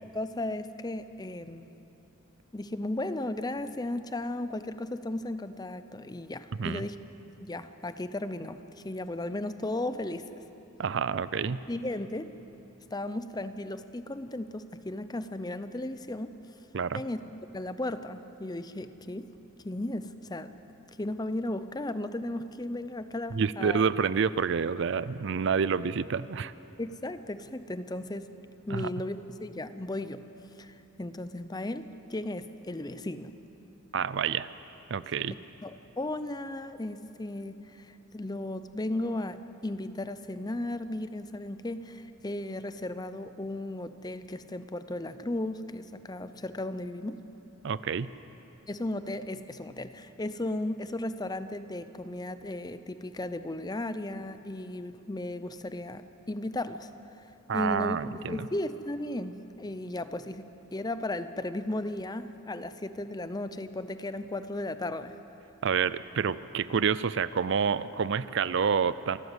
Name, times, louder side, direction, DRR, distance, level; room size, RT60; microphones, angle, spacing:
voice 1, 0.1-1.7 2.5-7.0 7.4-10.4 11.7-12.3 12.9-16.3 16.9-17.2 17.5-19.3 19.6-20.5 21.0-23.9 26.8-28.3 28.7-30.2 30.6-33.3 35.3-35.4 35.6-47.2 48.7-56.9 57.5-65.1, left 1 dB, 20° left, 12 dB, 0.6 m, -35 dB
voice 2, 10.8-11.6 16.7-17.0 23.3-26.5 28.7-28.9 33.9-34.5 34.9-35.4 47.6-48.1 57.5-58.4 65.6-69.2, right 6 dB, 60° right, 16 dB, 0.5 m, -28 dB
28.0 x 12.5 x 8.1 m, 3.0 s
head